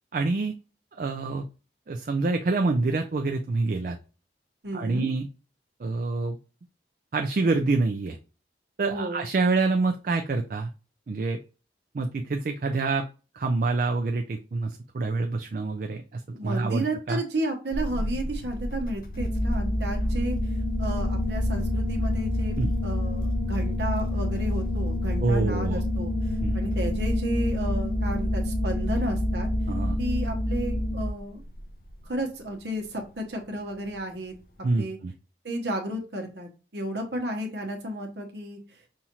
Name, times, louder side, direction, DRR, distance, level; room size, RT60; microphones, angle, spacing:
voice 1, 0.1-0.5 1.0-1.4 1.9-4.0 4.7-5.3 5.8-6.4 7.1-8.2 8.8-10.7 11.1-11.4 11.9-13.1 13.3-17.2 22.6-22.7 25.2-25.8 26.4-26.6 29.7-30.0 34.6-35.1, right 3 dB, 50° right, 5 dB, 0.4 m, -26 dB
voice 2, 4.6-5.1 8.8-9.3 16.3-20.4 20.8-29.5 30.0-31.4 32.0-34.3 34.7-35.0 35.4-38.6, right 1 dB, 75° right, 4 dB, 1.0 m, -32 dB
sound 1, 17.7-34.8, equal, 50° left, 0.6 m, -39 dB
sound 2, 19.1-31.1, left 1 dB, 20° right, 0.8 m, -27 dB
5.5 x 2.4 x 2.9 m, 0.34 s
head